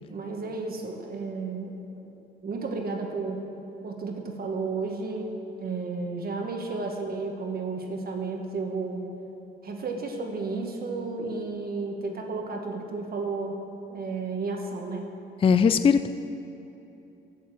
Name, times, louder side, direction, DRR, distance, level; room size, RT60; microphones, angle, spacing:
voice 1, 0.1-2.1 2.4-3.4 3.8-9.1 9.6-15.1, right 3 dB, 50° right, 2 dB, 1.5 m, -33 dB
voice 2, 15.4-16.1, left 6 dB, 30° left, 11 dB, 0.4 m, -19 dB
8.5 x 7.2 x 7.5 m, 2.9 s
cardioid pair, 90°, 20 cm